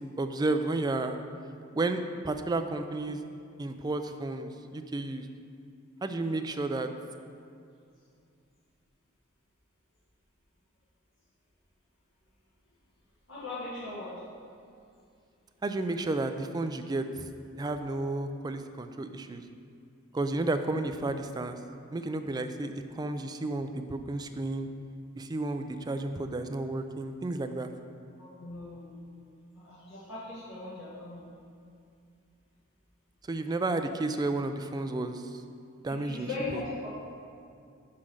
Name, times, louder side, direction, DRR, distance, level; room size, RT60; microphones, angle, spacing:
voice 1, 0.2-1.2 1.7-3.2 3.6-5.3 6.0-6.9 15.6-17.3 17.6-19.4 20.1-21.6 21.9-24.7 25.2-27.7 33.3-35.4 35.8-36.6, right 2 dB, 20° right, 7 dB, 0.3 m, -32 dB
voice 2, 13.3-14.2 28.2-29.0 29.5-31.3 35.9-36.9, left 2 dB, 70° left, -9 dB, 1.7 m, -39 dB
5.7 x 5.0 x 6.2 m, 2.4 s
head